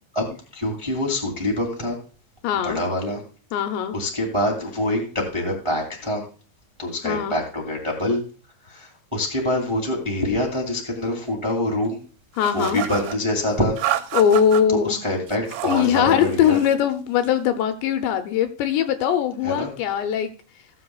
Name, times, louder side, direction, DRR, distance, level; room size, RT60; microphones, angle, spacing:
voice 1, 0.5-2.0 2.6-3.2 3.9-6.2 6.8-8.2 8.7-12.0 12.5-13.7 14.8-16.6 19.4-19.7, left 1 dB, 15° right, 0 dB, 1.0 m, -25 dB
voice 2, 2.4-2.8 3.5-4.0 7.0-7.4 12.4-12.8 14.1-15.0 15.6-20.3, left 9 dB, 80° left, 7 dB, 2.8 m, -21 dB
sound 1, 12.4-13.2 13.8-14.6 15.3-15.9 16.2-16.8, right 12 dB, 80° right, 2.8 m, -29 dB
17.0 x 7.7 x 2.3 m, 0.38 s
omnidirectional pair, 5.4 m